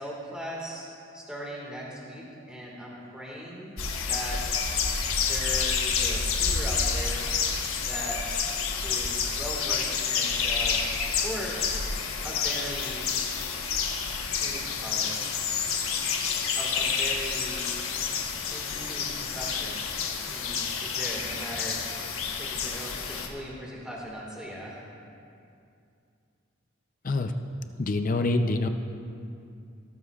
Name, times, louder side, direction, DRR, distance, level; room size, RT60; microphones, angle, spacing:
voice 1, 0.0-4.7 5.2-7.3 7.8-8.2 8.8-10.8 11.2-11.6 12.2-13.0 14.0-15.1 16.6-17.7 18.5-19.8 20.3-22.0 22.4-24.8, equal, 5° right, -4 dB, 1.8 m, -39 dB
sound 1, 3.8-23.3, left 5 dB, 90° left, 1.3 m, -29 dB
voice 2, 27.8-28.7, left 2 dB, 40° left, 7 dB, 0.5 m, -25 dB
19.5 x 12.5 x 2.4 m, 2.5 s
head